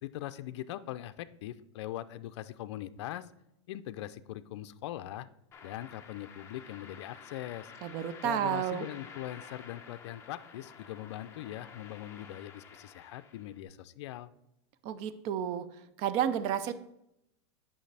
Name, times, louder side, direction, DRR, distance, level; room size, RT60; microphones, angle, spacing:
voice 1, 0.0-3.3 3.7-5.3 5.6-7.7 8.2-14.3, left 13 dB, 70° left, 11 dB, 0.4 m, -41 dB
sound 1, 5.5-13.6, left 6 dB, 15° left, 0.8 m, -51 dB
voice 2, 7.8-8.9 14.8-15.7 16.0-16.7, right 10 dB, 40° right, 14 dB, 0.5 m, -31 dB
9.1 x 5.6 x 3.3 m, 0.82 s
supercardioid pair, 150°, 15 cm